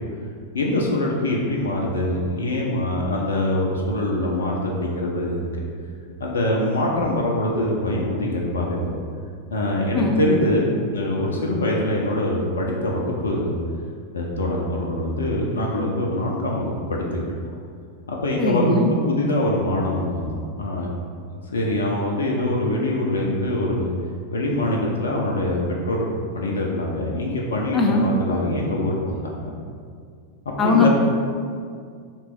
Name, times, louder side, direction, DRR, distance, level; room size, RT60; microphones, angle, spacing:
voice 1, 0.5-5.4 6.2-8.9 9.5-13.6 14.1-17.2 18.1-20.9 21.5-23.9 24.3-29.5 30.6-30.9, left 1 dB, 70° left, -2 dB, 0.6 m, -24 dB
voice 2, 18.4-18.9 27.7-28.1 30.6-30.9, left 2 dB, 20° left, 1 dB, 0.6 m, -20 dB
3.3 x 3.1 x 4.6 m, 2.1 s
figure-of-eight pair, 90°, 0 cm